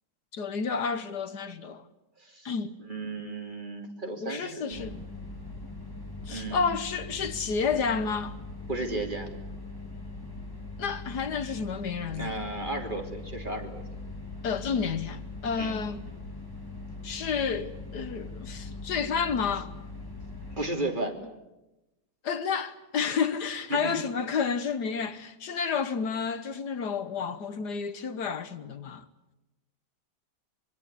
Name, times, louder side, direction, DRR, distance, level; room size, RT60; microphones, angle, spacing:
voice 1, 0.3-1.8 2.5-2.8 4.2-5.0 6.3-8.4 10.8-12.4 14.4-16.0 17.0-19.7 22.2-29.1, left 6 dB, 70° left, 1.8 m, -30 dB
voice 2, 2.8-4.9 6.3-6.7 8.7-9.3 12.2-13.8 14.8-14.9 15.6-15.8 20.6-21.1 23.7-23.9, right 2 dB, 25° right, 3.4 m, -34 dB
sound 1, 4.7-20.7, left 3 dB, 10° left, 3.4 m, -41 dB
25.0 x 22.5 x 8.4 m
omnidirectional pair, 1.8 m